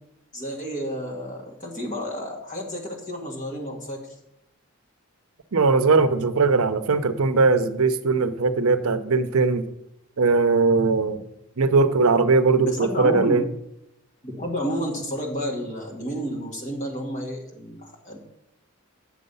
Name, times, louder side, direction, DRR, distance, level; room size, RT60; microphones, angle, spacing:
voice 1, 0.3-4.0 12.6-13.4 14.2-18.2, equal, 35° left, -2 dB, 2.0 m, -31 dB
voice 2, 5.5-9.6 10.2-11.2 11.6-13.4, right 4 dB, 80° right, 10 dB, 0.7 m, -20 dB
8.5 x 6.7 x 5.4 m, 0.83 s
head